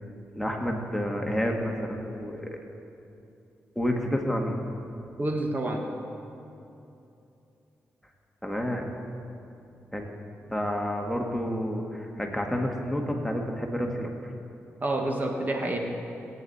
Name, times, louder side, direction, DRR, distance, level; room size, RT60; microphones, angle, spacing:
voice 1, 0.3-2.5 3.7-4.6 8.4-8.9 9.9-10.1 10.5-14.1, equal, 5° left, 1 dB, 1.7 m, -29 dB
voice 2, 5.2-5.8 14.8-15.8, right 1 dB, 35° right, 2 dB, 1.6 m, -28 dB
20.0 x 9.3 x 4.2 m, 2.8 s
cardioid pair, 65°, 5 cm